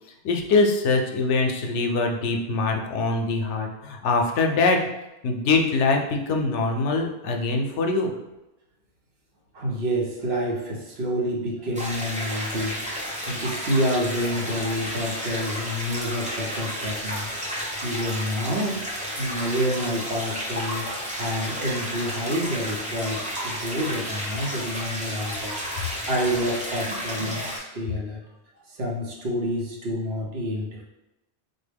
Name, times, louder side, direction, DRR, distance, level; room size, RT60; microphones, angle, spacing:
voice 1, 0.2-4.8 5.2-8.1, left 3 dB, 90° left, 3 dB, 0.9 m, -23 dB
voice 2, 9.5-17.3 17.8-18.8 19.2-20.9 21.1-28.2 28.7-30.8, equal, 65° right, -2 dB, 1.0 m, -28 dB
sound 1, 11.7-27.6, equal, 10° right, 0.6 m, -32 dB
4.0 x 2.1 x 3.4 m, 0.98 s
omnidirectional pair, 1.2 m